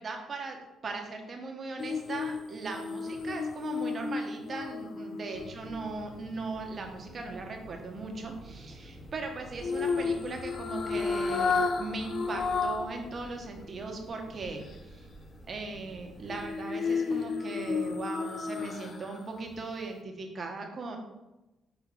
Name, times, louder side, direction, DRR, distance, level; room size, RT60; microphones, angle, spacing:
voice 1, 0.0-15.1 15.5-21.0, right 3 dB, 45° right, 2 dB, 1.2 m, -39 dB
sound 1, 1.8-6.0 9.6-13.0 13.4-13.5 16.3-19.2 19.5-19.6, left 4 dB, 55° left, 0.6 m, -32 dB
sound 2, 5.3-16.5, right 1 dB, 10° left, 2.1 m, -49 dB
5.5 x 3.8 x 4.5 m, 1.0 s
cardioid pair, 75°, 0 cm